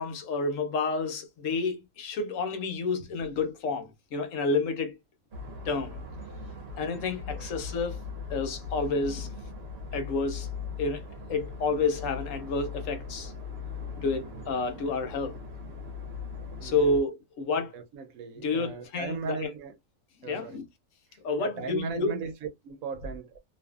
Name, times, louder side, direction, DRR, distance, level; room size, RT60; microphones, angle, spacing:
voice 1, 0.0-5.0 5.7-6.0 6.8-8.0 8.3-9.3 9.9-10.5 10.8-11.0 11.3-13.3 14.0-15.4 16.6-17.7 18.4-19.5 20.2-20.6 21.2-22.2, left 3 dB, 70° left, 1.0 m, -30 dB
sound 1, 5.3-17.0, left 4 dB, 55° right, 0.9 m, -39 dB
voice 2, 16.6-16.9 17.7-19.8 20.2-20.6 21.4-23.4, right 5 dB, 80° right, 1.0 m, -37 dB
2.5 x 2.5 x 2.3 m
omnidirectional pair, 1.4 m